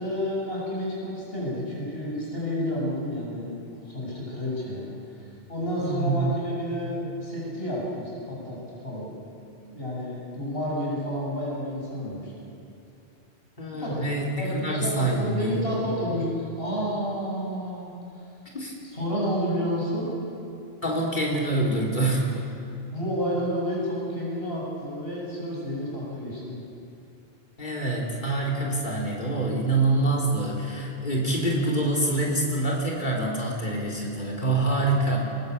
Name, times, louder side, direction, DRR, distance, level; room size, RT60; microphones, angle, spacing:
voice 1, 0.0-3.5 3.8-9.1 9.7-12.4 13.8-14.0 14.4-17.9 18.9-20.1 22.9-26.6, equal, 65° left, -5 dB, 8.3 m, -30 dB
voice 2, 5.8-6.3 13.6-15.8 18.5-18.7 20.8-22.3 27.6-35.2, right 2 dB, 50° left, -3 dB, 3.9 m, -26 dB
24.0 x 21.5 x 8.4 m, 2.7 s
omnidirectional pair, 1.1 m